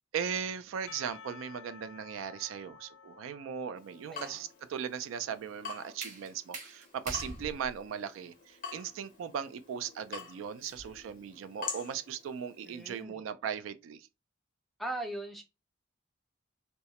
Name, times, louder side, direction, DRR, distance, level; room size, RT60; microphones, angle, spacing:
voice 1, 0.1-14.1, right 7 dB, 85° right, 0.3 m, -38 dB
Percussion / Church bell, 0.9-5.4, left 6 dB, 90° left, 0.3 m, -53 dB
Water tap faucet / Drip, 3.8-13.0, left 6 dB, 45° left, 0.6 m, -47 dB
voice 2, 4.1-4.4 12.6-13.2 14.8-15.4, right 1 dB, ahead, 0.4 m, -39 dB
sound 1, 5.3-11.1, right 2 dB, 40° right, 0.9 m, -47 dB
2.2 x 2.0 x 2.7 m
head